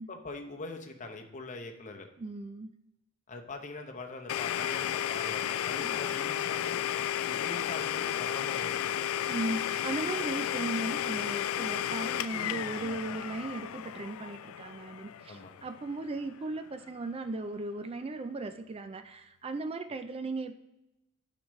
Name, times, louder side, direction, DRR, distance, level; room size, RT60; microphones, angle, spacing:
voice 1, 0.1-2.1 3.3-6.8 7.3-9.0 15.3-15.5, left 3 dB, 35° left, 4 dB, 0.8 m, -42 dB
voice 2, 2.2-2.7 5.8-6.0 9.3-20.6, right 2 dB, 30° right, 9 dB, 0.4 m, -37 dB
Domestic sounds home sounds, 4.3-15.9, left 10 dB, 85° left, 0.3 m, -33 dB
12.0 x 5.0 x 3.1 m, 0.92 s
head